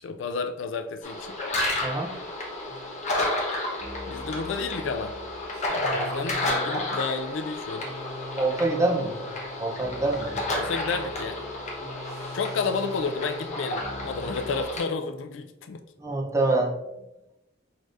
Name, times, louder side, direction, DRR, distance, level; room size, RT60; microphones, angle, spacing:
voice 1, 0.0-1.4 4.1-5.1 5.7-7.9 10.6-11.4 12.3-15.8, left 4 dB, 70° left, 7 dB, 0.4 m, -31 dB
sound 1, 1.0-14.8, left 1 dB, 40° left, 1.0 m, -31 dB
voice 2, 1.8-2.1 8.4-9.2 9.6-10.4 16.0-16.7, right 2 dB, 15° right, 0 dB, 0.6 m, -25 dB
sound 2, 2.7-3.0 3.8-7.2 7.8-14.6, left 2 dB, 35° right, 1.2 m, -42 dB
4.7 x 4.3 x 2.5 m, 0.93 s
head